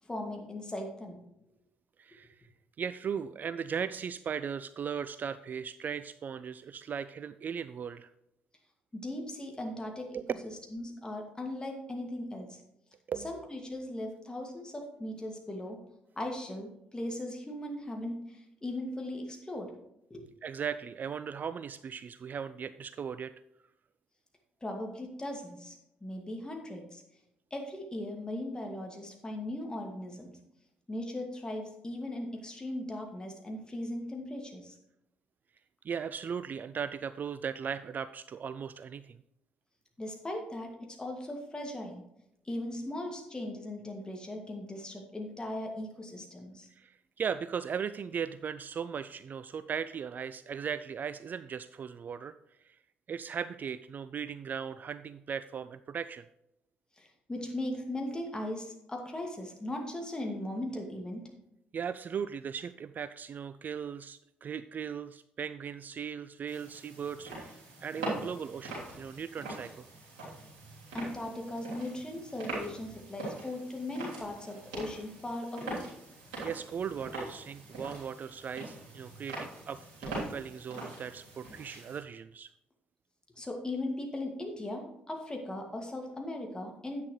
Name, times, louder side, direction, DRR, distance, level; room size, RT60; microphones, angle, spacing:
voice 1, 0.0-1.2 8.9-10.2 10.7-12.6 13.2-15.8 16.2-19.7 20.1-20.2 24.6-27.0 27.5-30.3 30.9-34.7 40.0-40.7 41.0-42.0 42.4-46.7 57.0-61.2 70.9-75.8 83.4-87.0, left 1 dB, 15° left, 2 dB, 2.2 m, -38 dB
voice 2, 2.8-8.1 10.1-10.2 13.1-13.3 20.4-23.3 35.8-39.2 46.8-52.4 52.6-52.7 53.1-56.2 61.7-67.5 67.8-69.9 76.4-82.5, right 7 dB, 40° right, 14 dB, 0.3 m, -38 dB
sound 1, 66.5-82.0, right 2 dB, 70° right, 3.3 m, -43 dB
10.5 x 8.4 x 3.2 m, 0.84 s
figure-of-eight pair, 45°, 5 cm